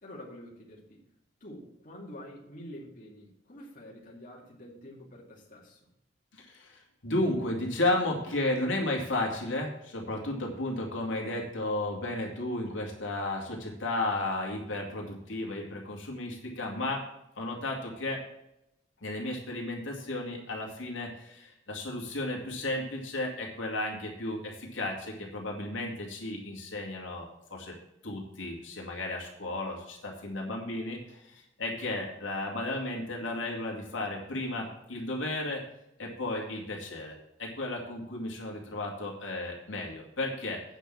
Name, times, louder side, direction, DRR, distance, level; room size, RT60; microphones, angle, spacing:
voice 1, 0.0-0.8 1.4-5.8, left 1 dB, 45° left, -3 dB, 2.6 m, -47 dB
voice 2, 6.3-17.0 17.4-18.2 19.0-27.8 28.0-35.6 36.0-40.6, left 2 dB, 80° left, -1 dB, 2.4 m, -33 dB
9.0 x 6.2 x 7.4 m, 0.83 s
head